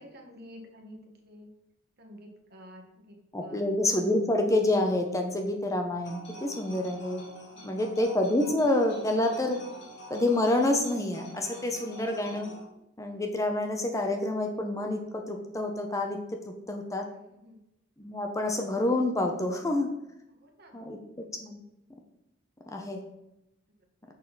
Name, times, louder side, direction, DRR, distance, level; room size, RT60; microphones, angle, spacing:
voice 1, 0.0-1.5 2.0-3.7 7.5-8.0 17.3-17.6 20.4-20.8, equal, 55° right, 2 dB, 1.4 m, -50 dB
voice 2, 3.3-7.2 7.6-9.6 10.1-12.5 13.0-17.1 18.0-19.9 20.7-21.0 21.4-21.6 22.7-23.0, left 1 dB, 15° left, 3 dB, 0.8 m, -28 dB
sound 1, 6.0-12.6, equal, 60° left, 1.9 m, -46 dB
6.5 x 6.3 x 4.1 m, 0.86 s
head